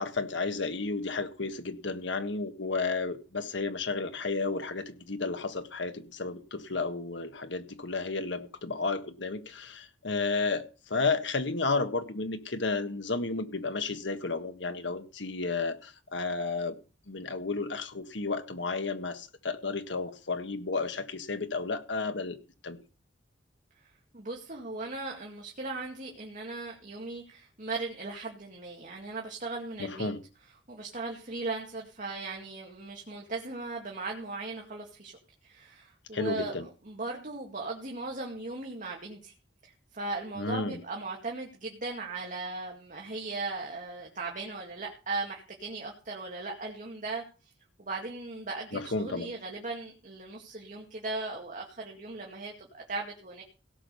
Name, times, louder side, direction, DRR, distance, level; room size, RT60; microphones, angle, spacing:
voice 1, 0.0-16.8 17.1-22.4 22.6-22.8 29.8-30.2 36.1-36.7 40.4-40.8 48.7-49.3, left 3 dB, 70° left, 1.5 m, -32 dB
voice 2, 24.1-30.1 30.7-39.3 39.6-47.2 47.8-53.4, right 3 dB, 45° right, 2.1 m, -38 dB
17.0 x 6.1 x 6.9 m
head